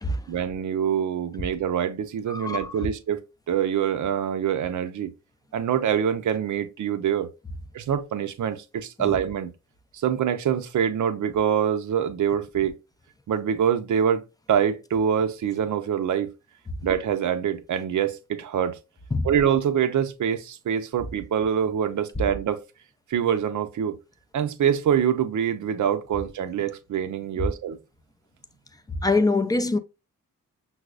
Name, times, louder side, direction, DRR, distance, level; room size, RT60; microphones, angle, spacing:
voice 1, 0.3-3.2 3.5-5.1 5.5-7.3 7.7-9.5 9.9-12.7 13.3-14.2 14.5-16.3 16.8-18.8 19.2-22.6 23.1-24.0 24.3-27.8, right 8 dB, 55° right, 0.6 m, -25 dB
voice 2, 2.3-2.8 9.0-9.1 19.1-19.3 29.0-29.8, left 3 dB, 10° left, 0.4 m, -24 dB
5.7 x 2.0 x 2.3 m
supercardioid pair, 60°, 36 cm